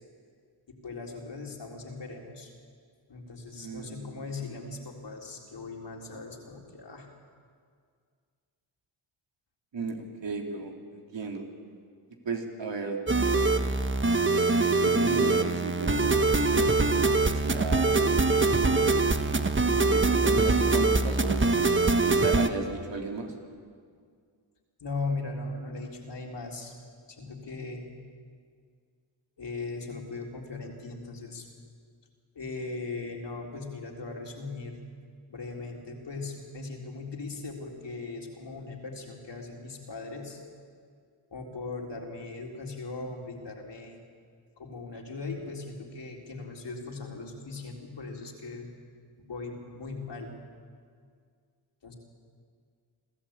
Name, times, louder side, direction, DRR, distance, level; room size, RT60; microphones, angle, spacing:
voice 1, 0.7-2.5 3.1-7.1 24.8-26.7 27.1-27.9 29.4-31.5 32.4-34.8 35.3-40.4 41.3-44.0 44.6-48.7 49.2-50.4 51.8-51.9, left 3 dB, 55° left, 0 dB, 3.9 m, -39 dB
voice 2, 3.5-4.2 9.7-10.0 10.2-11.4 12.2-13.0 14.3-18.9 19.7-21.7 22.0-23.3, right 4 dB, 60° right, 2 dB, 3.4 m, -35 dB
sound 1, 13.1-22.5, right 3 dB, 25° right, 1.4 m, -23 dB
25.0 x 13.0 x 8.8 m, 2.1 s
supercardioid pair, 50°, 50 cm